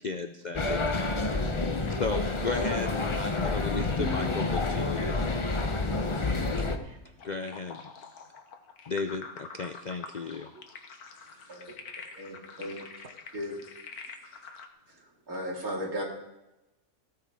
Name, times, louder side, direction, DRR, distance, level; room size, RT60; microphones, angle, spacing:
voice 1, 0.0-5.3 7.2-7.8 8.9-10.5, left 4 dB, 65° left, 0.4 m, -35 dB
sound 1, 0.5-6.8, left 3 dB, 25° left, 0.7 m, -29 dB
voice 2, 4.0-4.5 6.6-7.3 10.5-10.6 12.8-13.2, equal, 50° right, 1.4 m, -42 dB
sound 2, 7.2-14.7, left 5 dB, 90° left, 1.6 m, -46 dB
voice 3, 12.1-12.8 13.3-13.5 15.3-16.0, equal, 80° right, 2.9 m, -35 dB
17.0 x 13.5 x 3.7 m
omnidirectional pair, 1.5 m